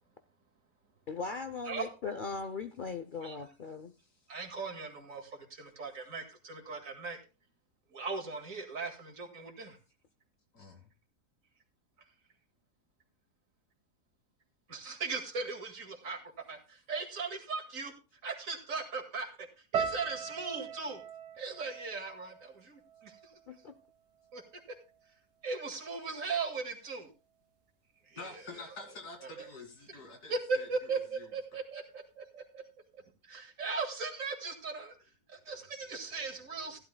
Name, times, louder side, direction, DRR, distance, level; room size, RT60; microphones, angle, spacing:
voice 1, 1.1-3.9 23.5-23.7, left 4 dB, 65° left, 9 dB, 0.5 m, -39 dB
voice 2, 4.3-7.2 7.9-9.8 14.7-16.2 16.5-16.6 16.9-17.9 18.2-19.5 19.7-21.0 21.4-23.1 24.3-24.4 25.4-27.1 28.1-28.7 29.2-29.5 30.3-32.6 33.3-34.9 35.5-36.8, right 4 dB, 55° right, 3 dB, 2.4 m, -38 dB
sound 1, 19.7-24.0 24.2-25.0 25.6-25.8, right 6 dB, 85° right, 1.8 m, -40 dB
voice 3, 28.2-30.7 31.2-31.3, left 3 dB, 80° left, 3 dB, 2.8 m, -47 dB
15.5 x 11.0 x 2.2 m, 0.31 s
omnidirectional pair, 1.7 m